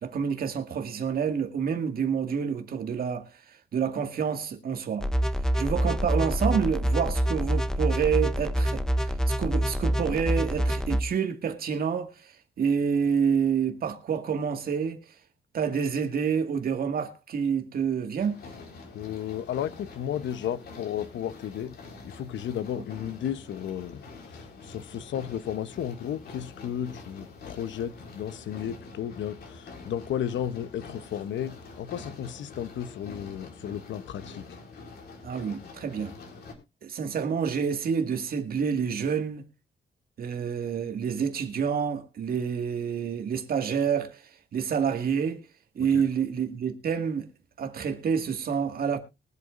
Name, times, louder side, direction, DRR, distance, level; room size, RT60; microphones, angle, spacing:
voice 1, 0.0-3.3 3.7-5.1 5.6-15.0 15.5-18.4 35.2-36.1 36.8-39.4 40.2-45.4 45.8-47.3 47.6-49.0, right 7 dB, 55° right, 2.0 m, -28 dB
sound 1, 5.0-11.0, equal, 5° left, 0.7 m, -26 dB
sound 2, 18.2-36.5, left 3 dB, 60° left, 4.2 m, -46 dB
voice 2, 18.9-21.8 22.0-34.6 45.9-46.0, left 10 dB, 85° left, 0.9 m, -34 dB
23.0 x 8.3 x 2.5 m
wide cardioid pair, 180°, 19 cm